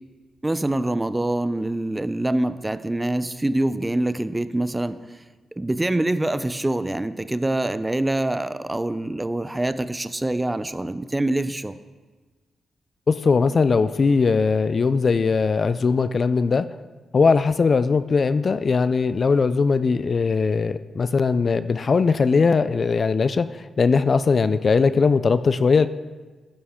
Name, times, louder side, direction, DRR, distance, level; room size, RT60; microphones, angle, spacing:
voice 1, 0.4-5.0 5.6-11.8, right 1 dB, 15° right, 13 dB, 0.5 m, -25 dB
voice 2, 13.1-16.7 17.1-25.9, left 4 dB, 45° left, 13 dB, 0.4 m, -20 dB
11.5 x 10.5 x 3.7 m, 1.3 s
cardioid pair, 90°, 0 cm